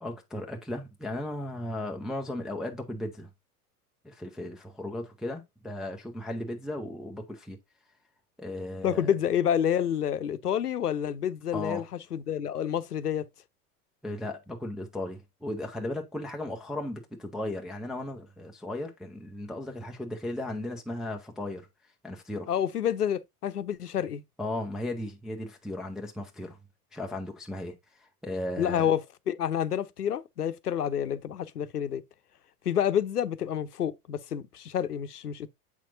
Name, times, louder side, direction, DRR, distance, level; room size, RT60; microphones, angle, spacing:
voice 1, 0.0-3.3 4.0-7.6 8.4-9.1 11.5-11.9 14.0-21.7 22.0-22.5 24.4-26.6 26.9-28.9, left 1 dB, ahead, 0.3 m, -36 dB
voice 2, 8.8-11.8 12.1-13.3 22.5-24.2 28.6-29.0 29.3-32.0 32.6-35.5, left 9 dB, 80° left, 0.7 m, -28 dB
7.6 x 5.8 x 2.5 m
figure-of-eight pair, 80°, 46 cm